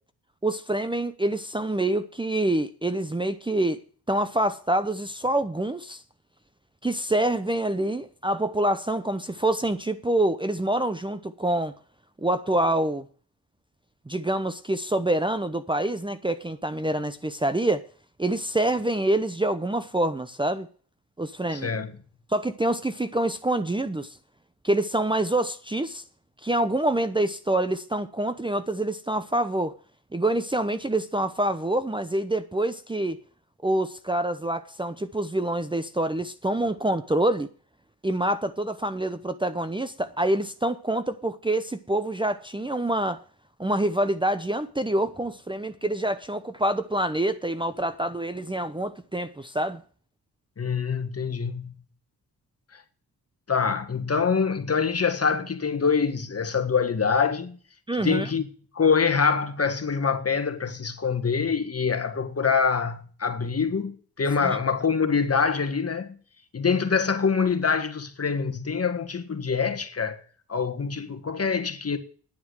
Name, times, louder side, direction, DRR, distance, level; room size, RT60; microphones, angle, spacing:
voice 1, 0.4-3.8 4.1-6.0 6.8-11.7 12.2-13.1 14.1-17.8 18.2-20.7 21.2-21.7 22.3-24.2 24.6-26.0 26.4-29.7 30.1-33.2 33.6-37.5 38.0-43.2 43.6-49.8 57.9-58.3 64.4-64.6, right 1 dB, 10° right, 0.8 m, -26 dB
voice 2, 21.5-22.0 50.6-51.7 53.5-57.6 58.0-58.4 58.7-66.2 66.5-70.2 70.5-72.0, left 5 dB, 40° left, 1.7 m, -25 dB
10.0 x 9.3 x 6.4 m
cardioid pair, 80°, 39 cm